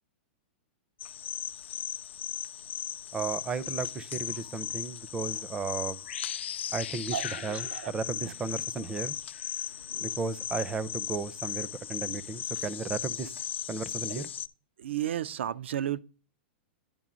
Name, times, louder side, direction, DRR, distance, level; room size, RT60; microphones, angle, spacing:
sound 1, 1.0-14.5, left 11 dB, 90° left, 0.4 m, -37 dB
voice 1, 3.1-6.0 6.7-9.2 10.0-13.3 13.7-14.3, right 4 dB, 10° right, 0.4 m, -34 dB
voice 2, 7.1-8.3 9.9-10.2 12.8-13.0 14.1-14.3 14.8-16.0, right 11 dB, 90° right, 0.4 m, -35 dB
10.5 x 3.6 x 6.1 m
supercardioid pair, 155°, 6 cm